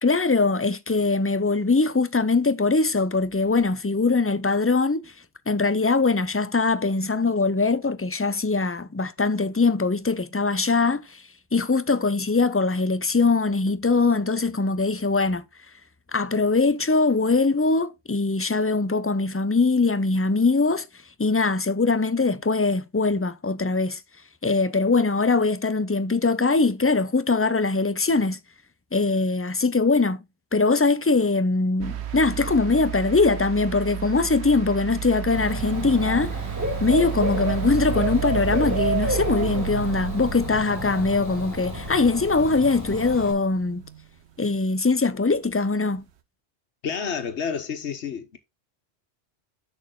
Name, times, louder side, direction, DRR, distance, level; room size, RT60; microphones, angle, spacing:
voice 1, 0.0-5.1 5.5-11.2 11.5-15.4 16.1-20.9 21.2-24.0 24.4-28.4 28.9-30.2 30.5-36.4 36.8-43.8 44.4-46.0, left 3 dB, 20° left, 0.3 m, -22 dB
sound 1, 31.8-44.1 45.3-45.4, right 11 dB, 75° right, 1.1 m, -33 dB
Dog / Bird, 35.3-43.3, right 1 dB, 15° right, 2.3 m, -30 dB
voice 2, 46.8-48.4, left 6 dB, 85° left, 1.4 m, -30 dB
7.2 x 6.5 x 3.7 m
omnidirectional pair, 1.1 m